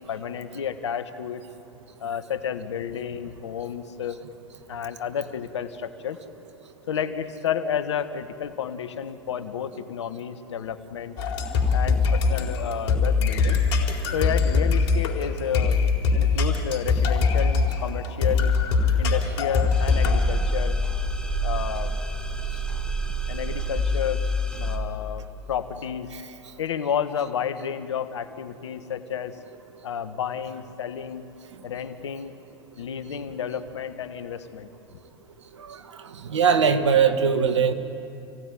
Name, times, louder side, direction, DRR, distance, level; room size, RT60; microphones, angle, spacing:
voice 1, 0.0-1.4 2.0-4.2 4.7-6.2 6.9-11.1 11.7-13.6 14.1-15.8 16.1-18.6 19.0-20.8 21.4-22.0 23.3-24.2 24.5-26.1 26.6-29.4 29.8-31.3 31.6-32.4 32.8-34.7, left 8 dB, 85° left, 11 dB, 1.4 m, -31 dB
sound 1, 11.2-20.2, left 4 dB, 65° left, 4.1 m, -22 dB
sound 2, 19.7-24.8, equal, 5° left, 2.9 m, -27 dB
voice 2, 36.3-37.7, right 6 dB, 85° right, 9 dB, 1.8 m, -20 dB
29.0 x 17.5 x 9.9 m, 2.7 s
hypercardioid pair, 85°, 15 cm